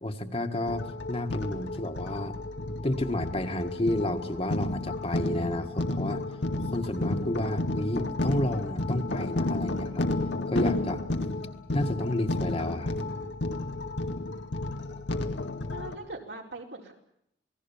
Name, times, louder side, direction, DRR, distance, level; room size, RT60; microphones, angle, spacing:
voice 1, 0.0-2.4 2.8-6.2 6.7-10.2 10.5-11.0 11.7-13.0, left 1 dB, 35° left, 5 dB, 1.7 m, -31 dB
sound 1, 0.7-15.9, left 2 dB, 85° left, 2.0 m, -32 dB
voice 2, 15.7-16.9, right 2 dB, 75° right, 1 dB, 4.7 m, -41 dB
28.0 x 19.5 x 7.2 m, 0.74 s
head